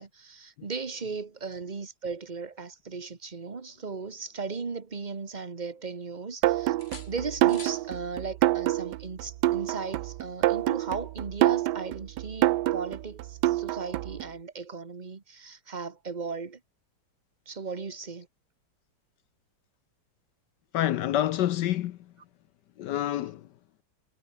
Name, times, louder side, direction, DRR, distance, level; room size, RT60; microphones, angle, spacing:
voice 1, 0.0-6.7 7.1-16.6 17.5-18.3, right 4 dB, 25° right, 1.3 m, -37 dB
sound 1, 3.7-5.2 5.6-6.4 6.8-7.9 9.7-9.9, left 4 dB, 30° left, 1.9 m, -51 dB
sound 2, 6.4-14.2, right 15 dB, 70° right, 1.1 m, -26 dB
voice 2, 20.7-22.1 22.8-23.6, left 12 dB, 70° left, 1.2 m, -28 dB
omnidirectional pair, 2.2 m